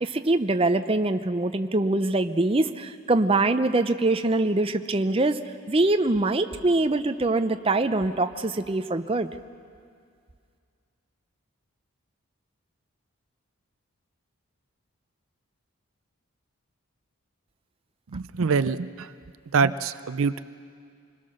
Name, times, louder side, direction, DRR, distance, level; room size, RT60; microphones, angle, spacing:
voice 1, 0.0-5.4 5.7-9.3, right 2 dB, 25° right, 9 dB, 0.6 m, -23 dB
voice 2, 18.1-19.1 19.5-20.4, right 5 dB, 70° right, 14 dB, 0.5 m, -25 dB
26.5 x 21.0 x 6.5 m, 2.2 s
head